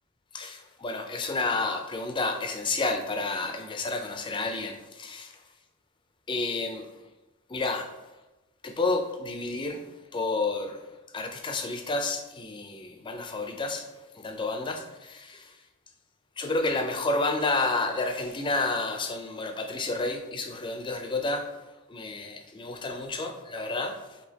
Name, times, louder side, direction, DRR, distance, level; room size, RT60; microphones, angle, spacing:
voice 1, 0.3-5.4 6.3-6.9 7.5-8.0 8.6-9.9 10.1-10.8 11.1-15.6 16.4-21.5 21.9-24.2, left 3 dB, 20° left, 5 dB, 0.4 m, -30 dB
4.9 x 3.3 x 2.8 m, 1.0 s
head